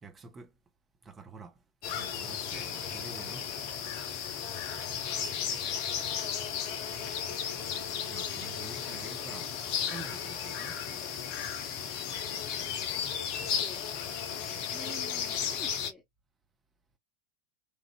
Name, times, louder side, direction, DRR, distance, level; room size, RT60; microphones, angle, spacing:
voice 1, 0.0-0.5 1.0-1.6 1.9-3.5 8.0-9.5 9.8-10.8, right 4 dB, 20° right, 0.8 m, -47 dB
sound 1, 1.8-15.9, left 8 dB, 45° left, 0.6 m, -34 dB
voice 2, 13.4-13.8 14.7-16.0, left 2 dB, ahead, 1.3 m, -49 dB
3.1 x 2.5 x 2.8 m
figure-of-eight pair, 90°, 0 cm